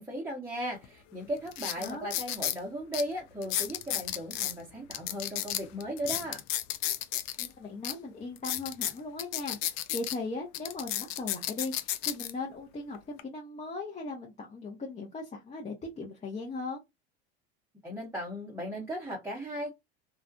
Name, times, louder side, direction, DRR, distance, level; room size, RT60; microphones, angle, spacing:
voice 1, 0.0-6.4 17.8-19.7, equal, 10° right, 0.8 m, -36 dB
sound 1, 0.8-0.9 1.5-2.6 2.9-3.0 3.4-4.5 4.9-7.5 7.8-7.9 8.4-10.2 10.5-12.3 12.9-13.2, left 12 dB, 55° left, 0.5 m, -32 dB
voice 2, 1.8-2.1 7.4-16.8, left 3 dB, 20° left, 0.8 m, -38 dB
2.4 x 2.1 x 2.5 m
hypercardioid pair, 85°, 32 cm